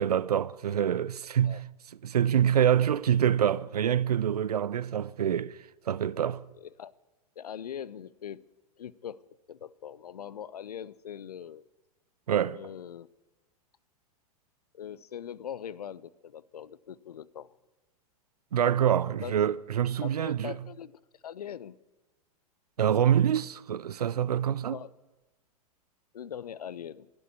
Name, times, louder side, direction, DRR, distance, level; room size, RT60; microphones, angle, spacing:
voice 1, 0.0-1.6 2.0-5.6 5.9-6.4 12.3-12.6 18.5-20.6 22.8-24.8, right 9 dB, 80° right, 0.5 m, -26 dB
voice 2, 6.6-6.9 7.4-8.5 8.8-9.2 9.5-11.6 12.5-13.1 14.7-17.6 19.2-19.3 20.0-21.8 24.7-24.9 26.1-27.1, left 9 dB, 80° left, 0.5 m, -41 dB
11.5 x 11.0 x 8.2 m
figure-of-eight pair, 95°, 20 cm